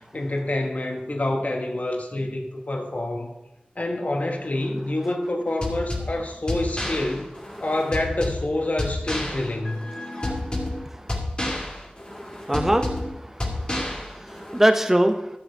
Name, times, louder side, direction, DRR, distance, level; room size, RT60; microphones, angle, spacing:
voice 1, 0.1-3.3 3.8-7.3 7.6-9.9, left 1 dB, 50° left, 2 dB, 1.2 m, -27 dB
sound 1, 5.6-14.6, left 1 dB, 30° left, 2.4 m, -30 dB
voice 2, 10.2-11.1 12.2-15.3, right 1 dB, 10° right, 5 dB, 0.7 m, -25 dB
13.5 x 6.7 x 4.5 m, 0.95 s
wide cardioid pair, 65°, 3 cm